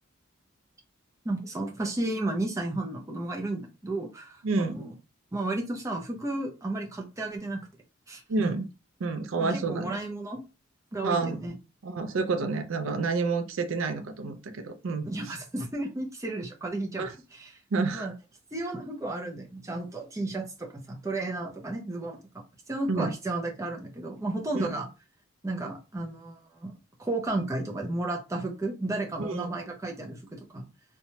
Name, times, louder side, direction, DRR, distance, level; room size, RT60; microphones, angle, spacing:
voice 1, 1.2-4.9 5.3-7.6 8.1-8.5 9.4-10.4 10.9-11.5 15.0-17.1 17.3-17.5 17.9-18.1 18.5-24.9 25.4-26.7 27.0-30.7, right 2 dB, 15° right, 0.5 m, -33 dB
voice 2, 4.4-4.8 8.3-8.6 9.0-10.0 11.0-11.4 11.8-15.4 17.0-17.1 17.7-18.1 22.9-23.1 24.5-24.8 29.2-29.5, right 3 dB, 75° right, 0.4 m, -29 dB
2.9 x 2.2 x 2.7 m
head